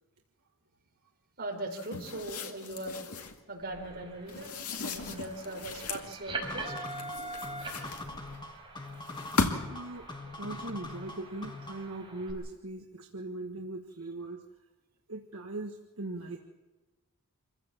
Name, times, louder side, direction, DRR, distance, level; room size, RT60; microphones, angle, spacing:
voice 1, 1.4-3.0 3.5-4.5 4.8-6.7, right 1 dB, 45° right, 2 dB, 4.5 m, -39 dB
sound 1, 1.7-3.4 4.3-6.1 6.8-8.4 9.0-9.9, left 3 dB, 90° left, 2.2 m, -36 dB
sound 2, 3.6-12.3, right 2 dB, 20° right, 5.7 m, -44 dB
sound 3, 6.4-12.0, left 2 dB, 20° left, 1.4 m, -43 dB
voice 2, 9.6-14.4 15.1-16.4, right 2 dB, 70° right, 1 dB, 1.6 m, -40 dB
27.0 x 15.5 x 7.5 m, 1.2 s
head